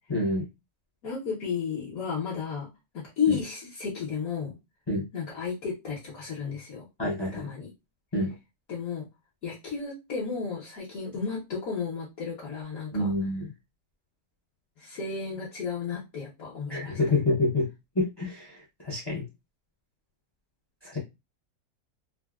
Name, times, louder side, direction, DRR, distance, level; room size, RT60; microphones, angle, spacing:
voice 1, 0.1-0.4 3.3-3.4 4.9-5.0 7.0-7.5 8.1-8.3 12.9-13.5 16.7-17.7 18.0-19.2 20.8-21.0, left 2 dB, 30° left, -3 dB, 0.4 m, -27 dB
voice 2, 1.0-2.7 2.9-4.5 5.1-6.9 7.3-7.7 8.7-9.0 9.4-13.1 14.8-17.0, left 6 dB, 65° left, -5 dB, 1.3 m, -33 dB
3.4 x 2.1 x 2.3 m, 0.23 s
omnidirectional pair, 1.7 m